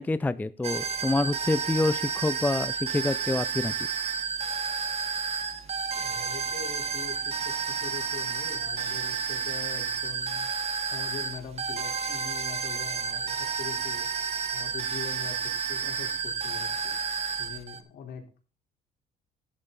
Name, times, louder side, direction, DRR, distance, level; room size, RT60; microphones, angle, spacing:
voice 1, 0.0-3.7, left 2 dB, 10° left, 15 dB, 0.5 m, -27 dB
sound 1, 0.6-17.8, right 6 dB, 40° right, 1.7 m, -31 dB
voice 2, 6.0-10.5 10.8-14.1 14.5-17.0 17.4-18.2, left 7 dB, 70° left, 2 dB, 4.0 m, -42 dB
13.5 x 11.0 x 4.0 m, 0.36 s
cardioid pair, 110°, 17 cm